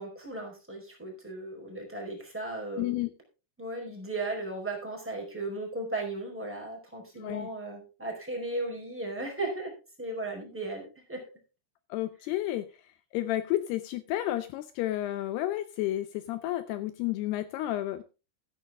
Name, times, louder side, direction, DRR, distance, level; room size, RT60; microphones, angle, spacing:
voice 1, 0.0-3.0 3.6-9.7 10.0-11.2, right 2 dB, 5° right, -1 dB, 4.2 m, -36 dB
voice 2, 2.8-3.1 7.2-7.5 11.9-12.7 13.1-18.0, left 14 dB, 90° left, 12 dB, 2.3 m, -31 dB
13.5 x 10.0 x 3.7 m, 0.31 s
omnidirectional pair, 5.5 m